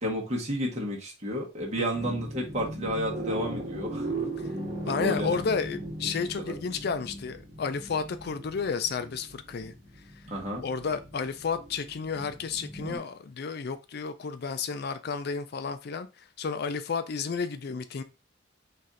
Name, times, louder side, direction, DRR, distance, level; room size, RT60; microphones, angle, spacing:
voice 1, 0.0-4.1 4.8-5.4 6.2-6.5 10.3-10.6, equal, 35° right, 1.4 m, -31 dB
voice 2, 1.8-2.1 4.4-4.5 4.9-9.7 10.2-10.3 10.6-18.0, left 5 dB, 55° left, 0.4 m, -32 dB
sound 1, 1.9-13.0, right 1 dB, 50° right, 1.4 m, -38 dB
4.2 x 3.2 x 3.7 m
head